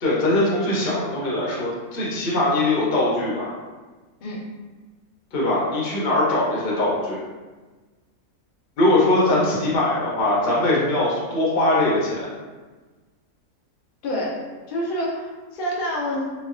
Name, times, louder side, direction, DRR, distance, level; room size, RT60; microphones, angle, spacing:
voice 1, 0.0-3.5 5.3-7.2 8.8-12.3, left 2 dB, 50° left, -6 dB, 0.7 m, -21 dB
voice 2, 14.0-16.2, equal, 90° left, -4 dB, 0.4 m, -27 dB
3.1 x 2.0 x 2.4 m, 1.3 s
omnidirectional pair, 1.6 m